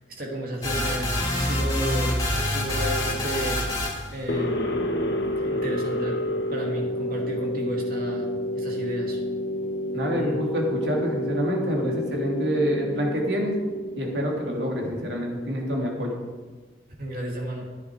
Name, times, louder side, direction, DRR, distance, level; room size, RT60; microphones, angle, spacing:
voice 1, 0.2-3.6 4.1-5.0 5.4-8.3 8.6-9.2 10.1-10.4 17.0-17.7, right 1 dB, 55° right, 0 dB, 2.5 m, -32 dB
sound 1, 0.6-4.1, left 1 dB, 20° left, 2.8 m, -26 dB
sound 2, 4.3-15.2, left 1 dB, 65° left, 1.7 m, -29 dB
voice 2, 9.9-13.5 14.0-16.2, equal, 70° right, -1 dB, 2.9 m, -27 dB
15.0 x 10.0 x 4.7 m, 1.3 s
head